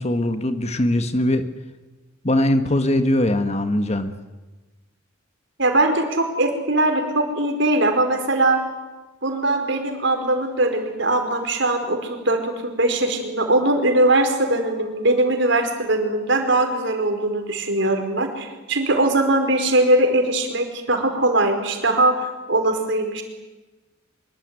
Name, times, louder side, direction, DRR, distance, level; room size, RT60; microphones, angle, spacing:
voice 1, 0.0-1.4 2.2-4.1, left 1 dB, 30° left, 9 dB, 1.6 m, -21 dB
voice 2, 5.6-8.6 9.2-23.2, right 2 dB, 60° right, 5 dB, 5.0 m, -21 dB
25.0 x 23.0 x 9.8 m, 1.1 s
head